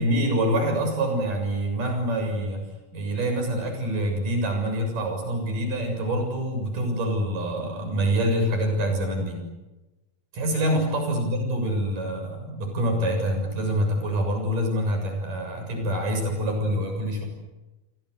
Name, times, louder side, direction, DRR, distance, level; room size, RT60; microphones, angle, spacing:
voice 1, 0.0-2.7 2.9-9.4 10.3-17.3, right 1 dB, 60° right, 4 dB, 8.6 m, -26 dB
29.0 x 24.0 x 8.2 m, 1.1 s
omnidirectional pair, 4.3 m